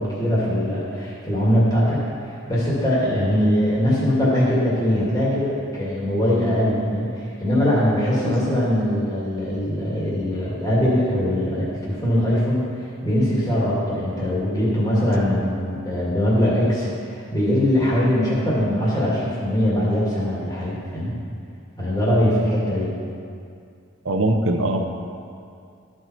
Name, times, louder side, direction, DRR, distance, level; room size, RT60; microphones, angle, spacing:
voice 1, 0.0-12.6 13.0-21.2 21.8-22.9, equal, 20° left, -8 dB, 2.3 m, -21 dB
voice 2, 24.0-24.8, right 1 dB, 75° right, 4 dB, 0.8 m, -21 dB
13.5 x 4.6 x 4.4 m, 2.4 s
head